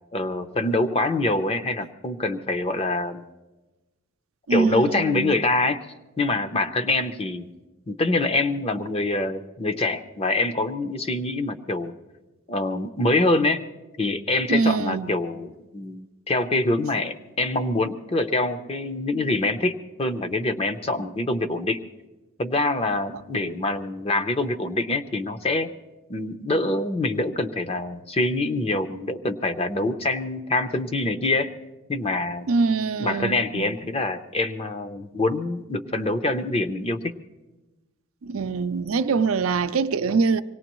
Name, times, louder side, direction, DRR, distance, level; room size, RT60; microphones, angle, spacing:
voice 1, 0.1-3.2 4.5-5.8 6.2-7.5 7.9-11.9 12.5-13.6 14.0-21.8 22.4-25.7 26.1-31.5 31.9-32.5 33.0-37.1, left 2 dB, 30° left, 0.7 m, -25 dB
voice 2, 4.5-5.3 14.5-15.1 32.5-33.7 38.2-40.4, right 4 dB, 85° right, 0.5 m, -23 dB
24.5 x 18.5 x 3.1 m
head